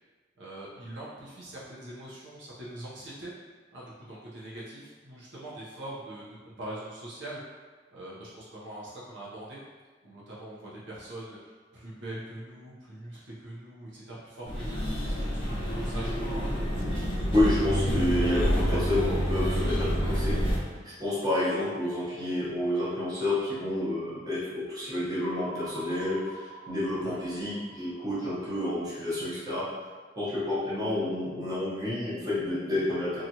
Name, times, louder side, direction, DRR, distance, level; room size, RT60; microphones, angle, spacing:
voice 1, 0.4-3.3 3.7-7.4 7.9-9.6 10.0-14.7 15.1-15.5 15.8-16.6 27.0-27.2, right 1 dB, 70° right, -7 dB, 0.7 m, -42 dB
sound 1, 14.5-20.6, equal, 30° left, 0.8 m, -28 dB
voice 2, 17.3-20.4 20.8-29.7 30.2-33.2, left 1 dB, 20° right, -10 dB, 0.9 m, -29 dB
sound 2, 25.2-29.4, equal, 10° left, 0.3 m, -45 dB
2.8 x 2.4 x 2.7 m, 1.4 s
head